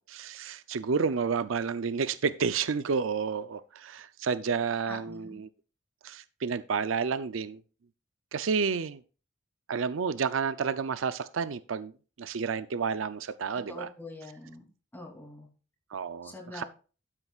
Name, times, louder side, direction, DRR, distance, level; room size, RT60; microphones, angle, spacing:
voice 1, 0.0-5.5 6.0-7.6 8.3-9.0 9.7-11.9 12.2-13.9 15.9-16.6, right 5 dB, 75° right, 0.5 m, -30 dB
voice 2, 4.9-5.4 13.7-14.7 14.9-15.5 16.2-16.6, left 1 dB, 10° left, 3.0 m, -44 dB
12.5 x 9.7 x 2.4 m
head